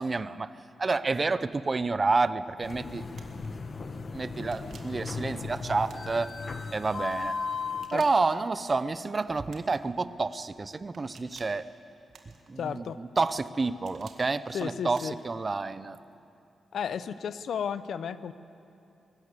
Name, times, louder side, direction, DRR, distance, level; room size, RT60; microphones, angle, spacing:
voice 1, 0.0-3.1 3.4-3.5 4.1-6.3 6.7-7.4 7.9-11.7 12.5-16.0, right 3 dB, 30° right, 15 dB, 0.6 m, -29 dB
sound 1, 2.6-7.9, left 4 dB, 45° left, 1.2 m, -36 dB
sound 2, 3.2-3.5 4.4-5.0 5.9-6.5 7.6-8.4 9.5-9.9 10.9-11.6 12.1-12.7 13.5-14.2 14.9-15.3, right 5 dB, 75° right, 1.8 m, -54 dB
voice 2, 12.6-13.0 14.5-15.1 16.7-18.3, left 7 dB, 80° left, 14 dB, 0.6 m, -33 dB
22.0 x 13.5 x 9.7 m, 2.8 s
wide cardioid pair, 110°, 0 cm